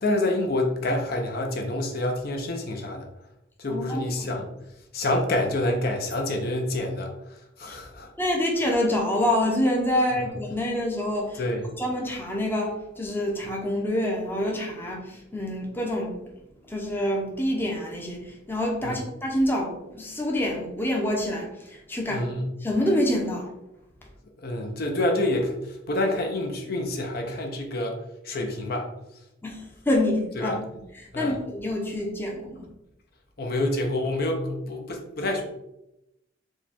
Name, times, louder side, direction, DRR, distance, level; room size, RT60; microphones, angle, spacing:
voice 1, 0.0-3.1 3.6-4.4 4.9-7.1 7.6-8.1 11.4-11.6 18.8-19.0 22.1-22.4 24.4-28.0 28.2-28.9 30.4-30.5 31.1-31.4 33.4-35.4, left 1 dB, 50° left, 2 dB, 0.6 m, -27 dB
voice 2, 3.7-4.4 7.7-7.8 8.2-11.4 11.8-16.2 16.7-22.3 22.6-23.5 29.4-30.6 31.0-32.7, left 1 dB, 10° left, -1 dB, 0.6 m, -27 dB
4.6 x 2.3 x 4.2 m, 0.88 s
head